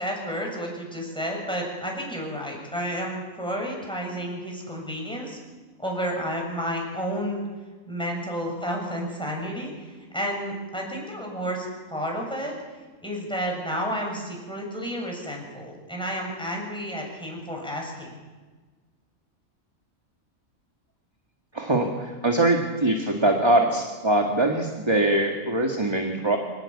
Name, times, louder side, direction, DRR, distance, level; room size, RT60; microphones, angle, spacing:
voice 1, 0.0-5.4 5.8-7.4 7.9-9.7 10.1-12.5 13.0-18.2, equal, 5° left, -1 dB, 7.2 m, -31 dB
voice 2, 21.5-26.4, right 1 dB, 20° right, 2 dB, 2.0 m, -22 dB
25.0 x 19.5 x 8.5 m, 1.4 s
omnidirectional pair, 1.4 m